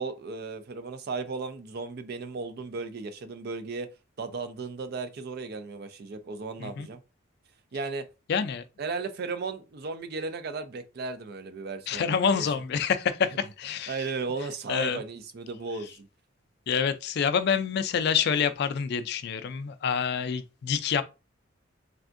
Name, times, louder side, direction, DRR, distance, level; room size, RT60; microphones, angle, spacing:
voice 1, 0.0-3.9 4.2-7.0 7.7-8.1 8.8-12.5 13.9-16.1, right 4 dB, 55° right, 0.4 m, -35 dB
voice 2, 8.3-8.6 11.9-13.9 14.7-15.0 16.7-21.0, left 7 dB, 55° left, 0.3 m, -27 dB
3.4 x 2.5 x 2.5 m
head